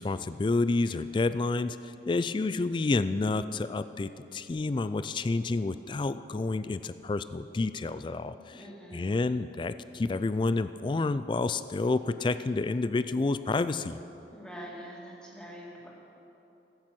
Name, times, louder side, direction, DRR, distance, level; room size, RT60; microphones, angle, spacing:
voice 1, 0.0-8.6 8.9-14.0, left 3 dB, 25° left, 13 dB, 0.3 m, -29 dB
voice 2, 8.3-9.1 14.3-15.9, equal, 5° left, -5 dB, 2.4 m, -45 dB
15.0 x 8.9 x 6.0 m, 2.9 s
head